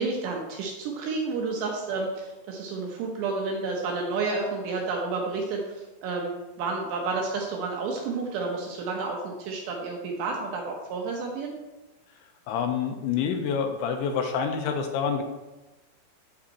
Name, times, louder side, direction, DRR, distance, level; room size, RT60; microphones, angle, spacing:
voice 1, 0.0-5.7 6.0-11.5, right 3 dB, 75° right, 0 dB, 2.9 m, -30 dB
voice 2, 12.5-15.2, left 6 dB, 85° left, 4 dB, 2.9 m, -27 dB
8.9 x 7.3 x 4.2 m, 1.1 s
omnidirectional pair, 5.7 m